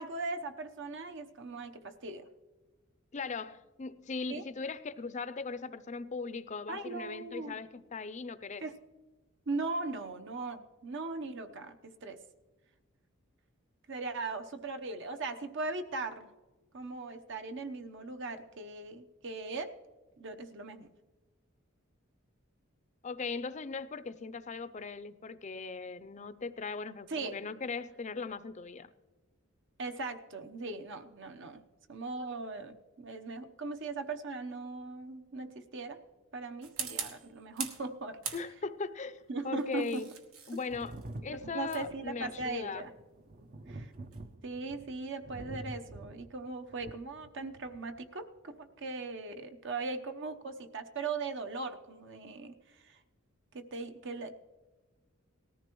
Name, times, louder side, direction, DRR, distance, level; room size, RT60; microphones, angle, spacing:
voice 1, 0.0-2.2 4.3-4.4 6.7-7.6 8.6-8.8 9.5-11.8 12.0-12.2 13.9-16.3 16.7-19.7 20.2-20.9 27.1-27.4 29.8-31.6 31.9-36.0 36.3-38.4 39.3-40.0 41.5-42.9 43.7-43.9 44.4-53.0 53.5-54.3, right 3 dB, 60° right, 7 dB, 0.9 m, -39 dB
voice 2, 3.1-8.6 23.0-28.9 38.3-40.1 40.5-41.0 41.2-42.9, left 4 dB, 35° left, 13 dB, 0.5 m, -39 dB
sound 1, 36.6-37.9 38.2-38.9 39.6-44.3, right 7 dB, 80° right, 1.4 m, -43 dB
Thunder, 40.7-48.0 49.2-49.3, right 2 dB, 40° right, 0.5 m, -47 dB
19.0 x 14.0 x 3.1 m, 1.2 s
head